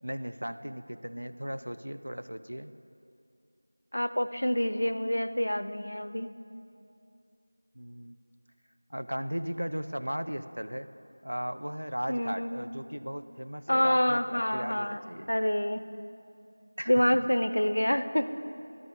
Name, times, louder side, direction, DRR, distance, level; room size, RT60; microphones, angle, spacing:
voice 1, 0.0-2.7 7.8-8.2 8.9-10.9 11.2-15.3 16.8-17.3, equal, 75° right, 10 dB, 0.4 m, -37 dB
voice 2, 3.9-6.3 12.1-12.6 13.7-15.0 15.3-15.8 16.9-18.3, equal, 60° left, 12 dB, 0.4 m, -27 dB
12.0 x 8.3 x 3.5 m, 2.6 s
figure-of-eight pair, 175°, 0 cm